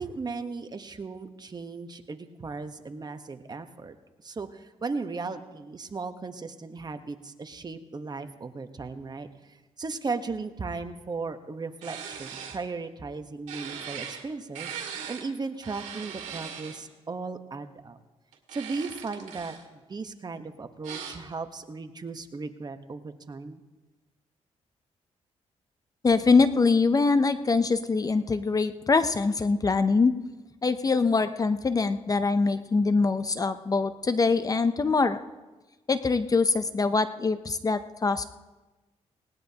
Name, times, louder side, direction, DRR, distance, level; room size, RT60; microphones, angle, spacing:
voice 1, 0.0-3.9 4.2-14.7 15.1-18.0 18.5-23.6, right 4 dB, 35° right, 8 dB, 1.1 m, -36 dB
sound 1, 11.8-12.6 13.5-14.2 14.5-15.3 15.6-16.8 18.3-19.6 20.8-21.2, right 7 dB, 85° right, 2.1 m, -39 dB
voice 2, 26.0-30.1 30.6-35.2 35.9-38.2, left 4 dB, 30° left, 11 dB, 0.6 m, -23 dB
18.5 x 18.5 x 2.9 m, 1.2 s
cardioid pair, 75°, 12 cm